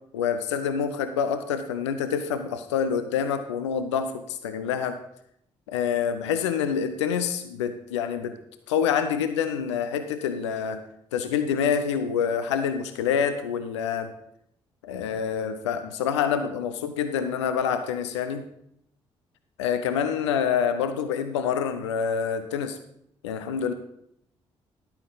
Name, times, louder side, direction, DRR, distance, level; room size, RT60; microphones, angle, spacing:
voice 1, 0.1-5.0 5.7-8.4 8.7-10.8 11.1-14.1 14.8-18.4 19.6-22.8 23.2-23.7, left 7 dB, 80° left, 9 dB, 0.5 m, -27 dB
11.5 x 8.7 x 3.9 m, 0.74 s
figure-of-eight pair, 40°, 15 cm